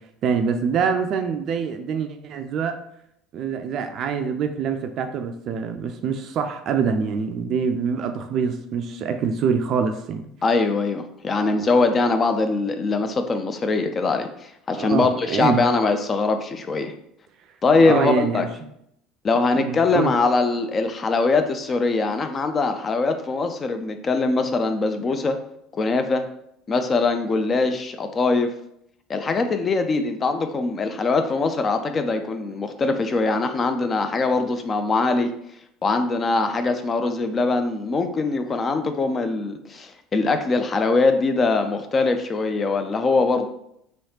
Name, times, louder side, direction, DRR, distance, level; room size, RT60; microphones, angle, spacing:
voice 1, 0.2-2.8 3.3-10.3 11.6-11.7 14.7-15.6 17.8-18.5 19.5-20.1, right 6 dB, 50° right, 7 dB, 0.3 m, -25 dB
voice 2, 10.4-16.9 17.6-18.5 19.2-25.4 25.7-26.2 26.7-28.5 29.1-35.3 35.8-43.5, left 3 dB, 30° left, 7 dB, 0.4 m, -22 dB
3.2 x 3.0 x 2.8 m, 0.75 s
figure-of-eight pair, 65°, 0 cm